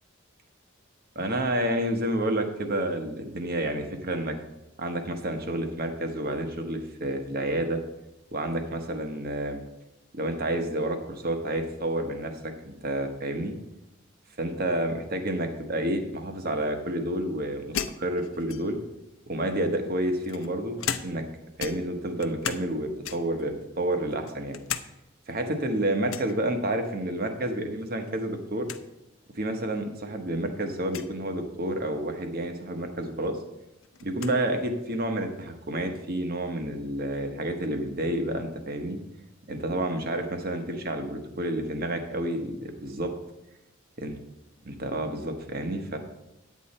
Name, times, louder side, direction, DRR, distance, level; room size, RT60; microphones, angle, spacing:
voice 1, 1.1-4.4 4.8-7.8 8.3-9.6 10.1-13.5 14.4-18.8 19.3-21.2 21.6-24.6 25.3-28.7 29.3-33.4 34.0-39.0 39.5-43.1 44.0-44.2 44.6-46.0, right 1 dB, 45° right, 6 dB, 1.2 m, -29 dB
sound 1, 17.7-18.9 19.7-21.3 21.6-22.7 23.0-23.4 23.9-24.9 25.2-25.3 26.1-26.4 27.8-28.1 28.4-28.5 28.7-28.8 29.7-29.8 30.8-31.1 32.8-32.9 33.2-34.4, left 8 dB, 80° left, 0.6 m, -36 dB
10.0 x 8.5 x 4.3 m, 0.92 s
head